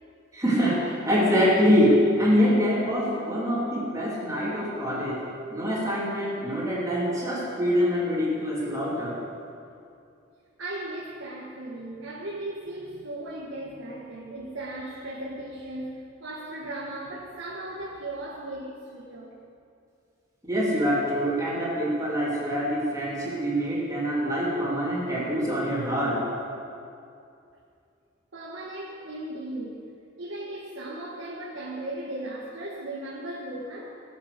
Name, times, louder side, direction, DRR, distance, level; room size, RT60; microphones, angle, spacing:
voice 1, 0.3-5.2 5.5-9.1 20.5-26.2, equal, 20° right, -6 dB, 3.1 m, -24 dB
voice 2, 10.6-19.3 28.3-29.8 30.2-34.0, right 1 dB, 85° right, -4 dB, 1.6 m, -37 dB
19.0 x 7.3 x 6.8 m, 2.5 s
head